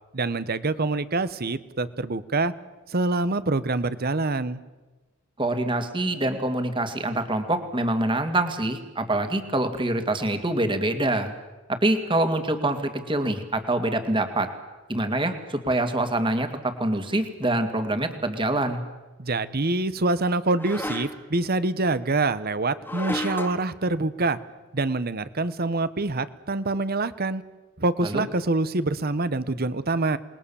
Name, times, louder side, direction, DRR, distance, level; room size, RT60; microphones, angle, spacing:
voice 1, 0.1-2.5 2.9-4.6 19.2-24.4 24.7-27.4 27.8-30.2, right 2 dB, 50° right, 15 dB, 1.1 m, -25 dB
voice 2, 5.4-11.3 11.7-14.5 14.9-18.8 28.0-28.2, right 1 dB, 25° right, 7 dB, 2.3 m, -25 dB
sound 1, 17.4-17.6 20.6-21.4 22.8-23.7, left 1 dB, 10° left, 2.2 m, -33 dB
27.5 x 21.0 x 7.1 m, 1.2 s
head